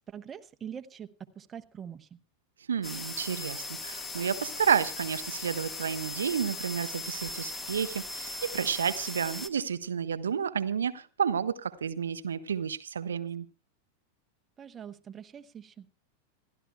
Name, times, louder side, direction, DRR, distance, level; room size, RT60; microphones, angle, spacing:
voice 1, 0.1-1.1 1.4-2.1 14.6-15.9, right 8 dB, 20° right, 0.9 m, -43 dB
voice 2, 2.7-13.5, right 7 dB, 70° right, 0.7 m, -31 dB
sound 1, 2.8-9.5, left 2 dB, 15° left, 1.4 m, -38 dB
27.5 x 12.0 x 2.2 m
figure-of-eight pair, 90°, 0 cm